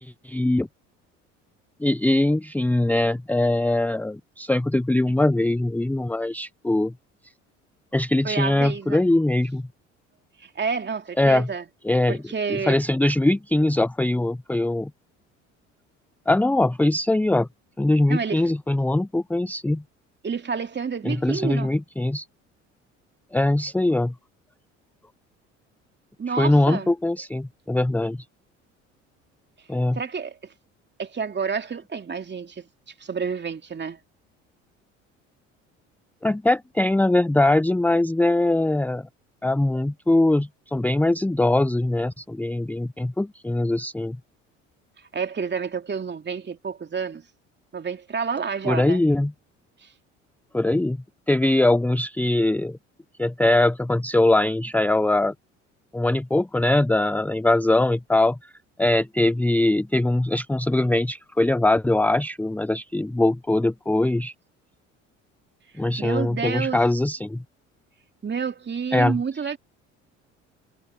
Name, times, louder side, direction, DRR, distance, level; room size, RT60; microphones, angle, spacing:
voice 1, 0.0-0.7 1.8-6.9 7.9-9.6 11.2-11.5 11.8-12.2 12.5-14.9 16.3-17.5 17.8-19.8 21.0-22.2 23.3-24.1 26.3-28.2 29.7-30.0 36.2-39.1 39.4-44.2 48.6-49.3 50.5-51.0 51.3-52.8 53.2-55.3 55.9-58.5 58.8-64.3 65.8-67.4 68.9-69.2, left 2 dB, 5° left, 0.7 m, -22 dB
voice 2, 8.2-9.0 10.4-11.6 12.1-12.8 18.1-18.5 20.2-21.7 26.2-26.9 30.0-30.5 31.0-32.7 33.0-34.0 45.1-47.2 47.7-49.0 49.8-49.9 66.0-66.8 68.2-69.6, right 6 dB, 30° right, 2.8 m, -29 dB
hypercardioid pair, 60°, 36 cm